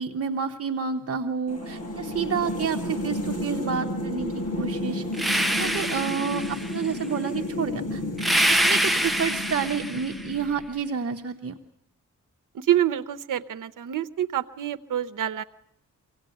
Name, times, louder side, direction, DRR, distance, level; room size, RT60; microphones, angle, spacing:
voice 1, 0.0-5.0 5.6-8.0 8.5-11.6, right 6 dB, 50° right, 4 dB, 1.0 m, -29 dB
sound 1, 1.5-10.8, left 1 dB, 50° left, 7.8 m, -32 dB
sound 2, 5.1-6.8 8.2-10.3, equal, ahead, 0.8 m, -25 dB
voice 2, 12.5-15.4, right 11 dB, 80° right, 10 dB, 0.9 m, -26 dB
24.5 x 17.0 x 9.1 m, 0.78 s
wide cardioid pair, 135°, 31 cm